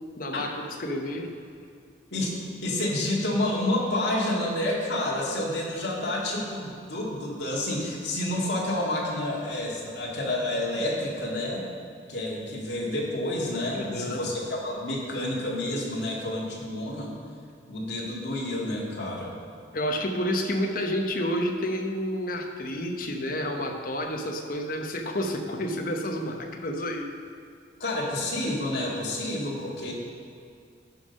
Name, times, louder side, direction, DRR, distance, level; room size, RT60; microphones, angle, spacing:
voice 1, 0.2-1.3 13.7-14.3 19.7-27.1, equal, 50° left, 4 dB, 0.9 m, -30 dB
voice 2, 2.6-11.6 12.1-17.1 17.7-19.3 27.8-29.9, left 1 dB, 70° left, -4 dB, 2.0 m, -29 dB
10.5 x 5.5 x 5.3 m, 2.4 s
head